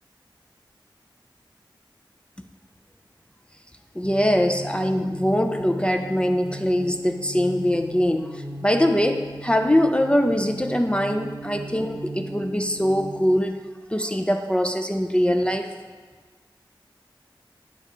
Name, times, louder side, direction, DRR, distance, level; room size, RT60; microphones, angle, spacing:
voice 1, 3.9-15.7, equal, 10° left, 6 dB, 0.4 m, -22 dB
sound 1, 4.0-13.4, right 1 dB, 65° right, 0.7 m, -38 dB
9.0 x 3.3 x 4.9 m, 1.5 s
wide cardioid pair, 70°, 9 cm